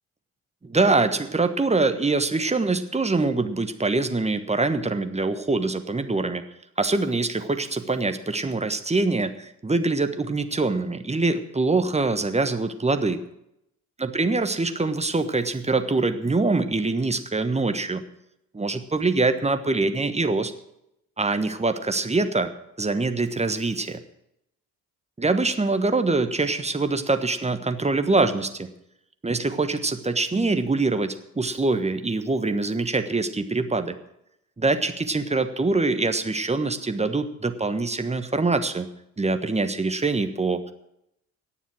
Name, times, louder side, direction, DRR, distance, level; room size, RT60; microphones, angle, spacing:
voice 1, 0.6-6.4 6.8-13.2 14.0-18.0 18.5-20.5 21.2-22.5 22.8-24.0 25.2-28.7 29.2-34.0 34.6-38.9 39.2-40.7, right 3 dB, 15° right, 9 dB, 1.3 m, -24 dB
18.5 x 7.2 x 6.4 m, 0.79 s
figure-of-eight pair, 45°, 42 cm